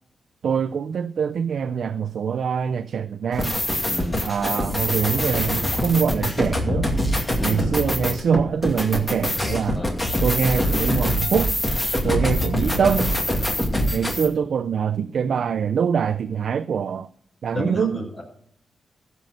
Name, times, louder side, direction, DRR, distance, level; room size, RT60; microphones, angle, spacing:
voice 1, 0.4-3.6 4.2-6.9 7.4-9.8 10.2-11.5 12.0-13.2 13.9-17.1 17.4-18.0, right 7 dB, 65° right, 0.4 m, -24 dB
sound 1, 3.3-14.3, left 1 dB, 20° left, 2.5 m, -24 dB
voice 2, 3.8-4.2 7.4-7.7 9.7-9.9 12.0-12.2 17.5-18.2, equal, 35° left, 5.9 m, -30 dB
14.5 x 6.3 x 6.6 m
cardioid pair, 105°, 0 cm